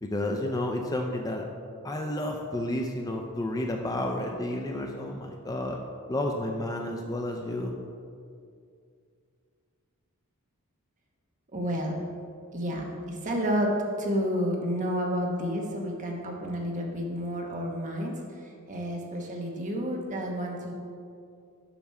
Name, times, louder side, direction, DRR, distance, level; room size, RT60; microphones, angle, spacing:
voice 1, 0.0-1.5 1.8-5.8 6.1-7.7, left 1 dB, 15° left, 2 dB, 0.4 m, -31 dB
voice 2, 11.5-12.0 12.5-13.7 14.0-18.1 18.7-20.7, equal, 35° right, 0 dB, 1.0 m, -30 dB
7.1 x 6.0 x 4.2 m, 2.3 s
head